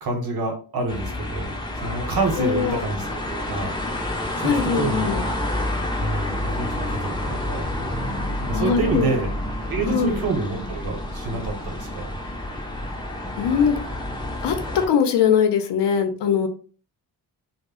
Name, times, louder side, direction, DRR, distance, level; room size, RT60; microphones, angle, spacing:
voice 1, 0.0-1.5 1.8-3.7 4.4-4.5 4.8-5.1 6.0-7.6 8.4-9.3 9.7-12.0, right 3 dB, 60° right, 2 dB, 0.8 m, -27 dB
sound 1, 0.9-14.9, left 1 dB, 10° left, 0.4 m, -29 dB
voice 2, 2.4-2.8 4.4-5.2 8.5-9.1 9.9-10.2 13.3-13.8 14.4-16.5, left 7 dB, 85° left, 6 dB, 0.6 m, -21 dB
2.0 x 2.0 x 3.6 m, 0.39 s
wide cardioid pair, 135°, 41 cm